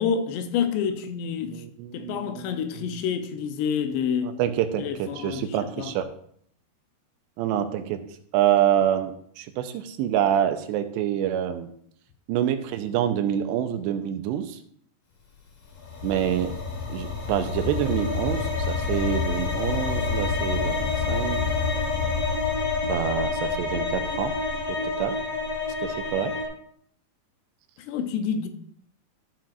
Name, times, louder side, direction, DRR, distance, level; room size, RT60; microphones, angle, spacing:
voice 1, 0.0-1.5 1.9-4.4 4.8-5.4 5.8-5.9 27.8-28.5, left 7 dB, 80° left, 3.0 m, -28 dB
voice 2, 1.4-2.5 4.2-6.1 7.4-8.0 8.3-11.7 12.3-14.6 16.0-16.5 16.9-21.4 22.8-24.3 24.7-25.2 25.8-26.3, right 10 dB, 85° right, 2.8 m, -26 dB
sound 1, 15.7-26.5, left 4 dB, 60° left, 1.6 m, -28 dB
13.5 x 7.5 x 2.5 m
omnidirectional pair, 4.9 m